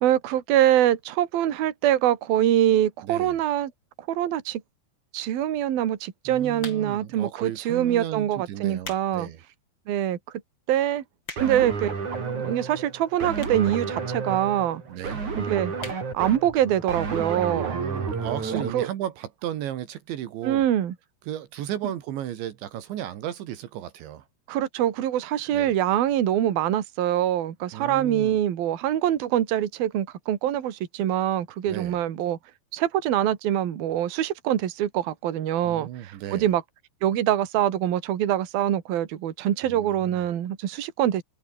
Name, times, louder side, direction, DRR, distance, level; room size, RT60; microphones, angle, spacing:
voice 1, 0.0-3.7 4.1-4.6 5.1-9.3 9.9-10.2 10.7-11.0 11.4-12.0 12.2-14.8 15.4-15.7 16.1-17.8 18.5-18.9 20.4-21.0 24.5-32.4 32.7-36.6 37.0-41.2, right 11 dB, 60° right, 3.7 m, -24 dB
voice 2, 3.0-3.4 6.3-9.4 14.9-15.2 17.6-20.6 21.3-24.3 25.5-25.7 27.7-28.4 31.7-32.0 35.6-36.5 39.6-40.2, right 11 dB, 75° right, 4.1 m, -34 dB
sound 1, 6.6-7.1 7.8-8.0 8.6-9.1 9.5-9.6 10.2-10.3 10.5-10.6 10.9-11.7 12.5-12.6 13.4-13.7 14.0-14.1 14.3-14.4 14.6-14.7 15.0-15.3 15.8-16.0 16.4-16.5 16.7-16.8, left 3 dB, 25° left, 5.8 m, -40 dB
sound 2, 11.4-18.7, right 5 dB, 40° right, 5.9 m, -31 dB
omnidirectional pair, 5.3 m